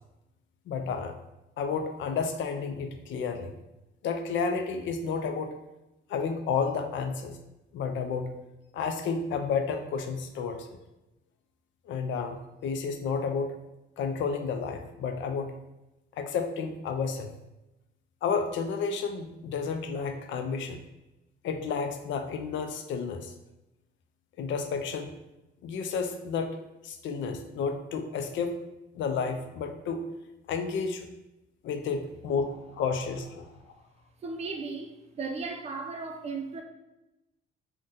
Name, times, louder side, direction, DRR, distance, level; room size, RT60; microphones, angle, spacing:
voice 1, 0.7-1.2 1.6-3.6 4.0-5.5 6.1-7.4 7.7-8.4 8.7-10.7 11.9-13.6 14.0-15.6 16.1-17.3 18.2-20.8 21.4-23.3 24.4-25.1 25.6-26.6 26.8-28.6 28.9-30.0 30.5-31.1 31.6-33.7, left 5 dB, 70° left, 6 dB, 0.4 m, -31 dB
voice 2, 34.2-36.6, right 4 dB, 30° right, 2 dB, 0.5 m, -36 dB
2.6 x 2.2 x 3.6 m, 0.95 s
cardioid pair, 90°, 20 cm